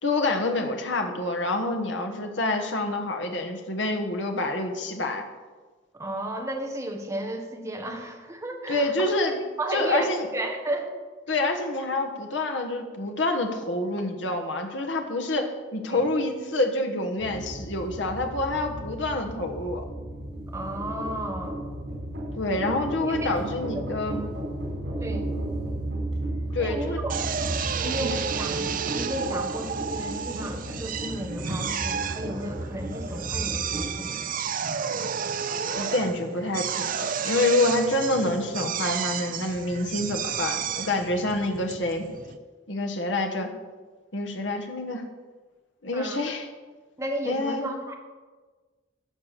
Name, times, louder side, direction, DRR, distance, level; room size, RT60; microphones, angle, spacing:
voice 1, 0.0-5.2 8.7-9.4 9.7-10.3 11.3-19.8 22.4-24.2 26.5-27.0 27.8-28.1 35.7-42.1 42.7-43.5 44.1-45.0 45.8-46.5 47.2-47.7, left 2 dB, 70° left, 4 dB, 1.3 m, -27 dB
voice 2, 5.9-8.9 9.6-10.1 10.3-10.9 15.9-16.1 20.5-21.6 23.0-23.4 25.0-25.3 26.6-27.1 27.8-34.2 45.9-46.2 47.0-47.9, right 1 dB, 15° right, 2 dB, 1.5 m, -33 dB
sound 1, 17.2-33.9, right 1 dB, 85° right, 4.5 m, -34 dB
Drill, 27.1-42.4, right 7 dB, 45° right, 0.6 m, -31 dB
13.0 x 6.8 x 6.9 m, 1.4 s
head